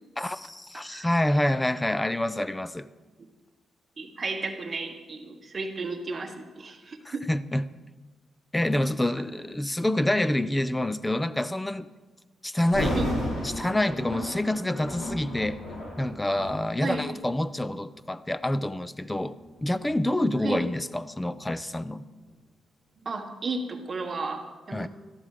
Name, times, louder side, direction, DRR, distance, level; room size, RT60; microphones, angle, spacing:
voice 1, 0.2-2.9 7.0-7.6 8.5-11.9 12.4-13.0 13.4-15.6 16.0-19.4 19.6-22.1 24.7-24.9, left 1 dB, 10° left, 0.4 m, -27 dB
voice 2, 4.0-7.3 12.9-13.1 16.8-17.1 20.4-20.6 23.0-24.9, right 3 dB, 30° right, 1.4 m, -33 dB
Thunder, 12.6-17.6 18.3-18.5 19.1-21.9 22.3-22.4, equal, 75° left, 5.3 m, -34 dB
13.5 x 11.0 x 5.0 m
wide cardioid pair, 150°, 0 cm